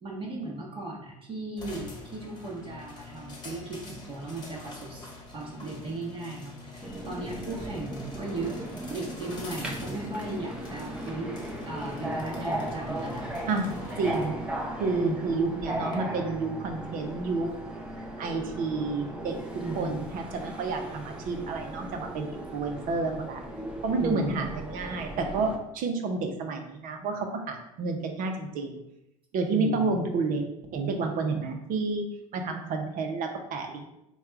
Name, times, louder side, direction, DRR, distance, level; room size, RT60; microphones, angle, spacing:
voice 1, 0.0-8.6 8.9-11.3 11.7-13.2 14.9-15.4 19.6-20.0 24.0-24.4 29.5-30.0, right 2 dB, 30° right, -4 dB, 1.1 m, -36 dB
sound 1, 1.6-16.0, left 2 dB, 25° left, 1.2 m, -45 dB
Subway metro underground, 6.8-25.6, right 1 dB, 5° right, 0.7 m, -37 dB
voice 2, 13.5-14.3 14.7-17.5 18.0-19.4 19.7-23.4 23.8-28.8 29.3-32.1 32.3-33.9, right 3 dB, 50° right, 4 dB, 0.8 m, -30 dB
3.5 x 2.3 x 4.4 m, 0.86 s
hypercardioid pair, 85°, 18 cm